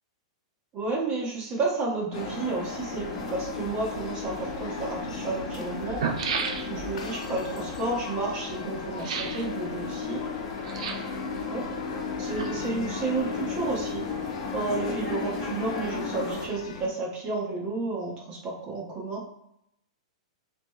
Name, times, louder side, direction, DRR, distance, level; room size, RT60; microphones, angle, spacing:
voice 1, 0.7-6.0 6.7-10.2 11.5-11.6 12.2-14.0 14.5-19.2, right 3 dB, 25° right, -3 dB, 1.2 m, -31 dB
sound 1, 2.1-16.5, left 4 dB, 40° left, 1.0 m, -34 dB
sound 2, 2.7-16.9, left 5 dB, 75° left, 0.6 m, -45 dB
sound 3, 4.5-4.6 5.4-5.5 5.8-7.0 9.0-9.5 10.6-11.2 12.0-12.8 13.1-13.2, right 5 dB, 70° right, 0.6 m, -32 dB
4.2 x 3.0 x 3.1 m, 0.78 s
hypercardioid pair, 155°, 4 cm